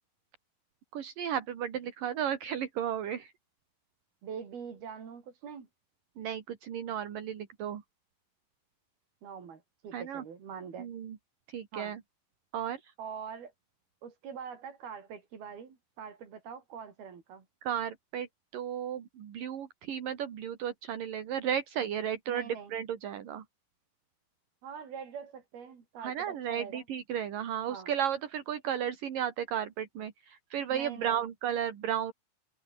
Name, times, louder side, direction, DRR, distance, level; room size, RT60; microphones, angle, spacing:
voice 1, 0.9-3.3 6.2-7.8 9.9-10.2 10.8-11.2 11.5-12.0 12.5-12.9 17.6-18.3 18.5-23.4 26.0-32.1, right 9 dB, 65° right, 3.8 m, -34 dB
voice 2, 4.2-5.7 9.2-10.9 11.7-11.9 13.0-13.5 14.0-17.5 22.3-22.7 24.6-26.8 27.7-27.9 30.7-31.2, right 7 dB, 90° right, 5.9 m, -44 dB
omnidirectional pair, 4.2 m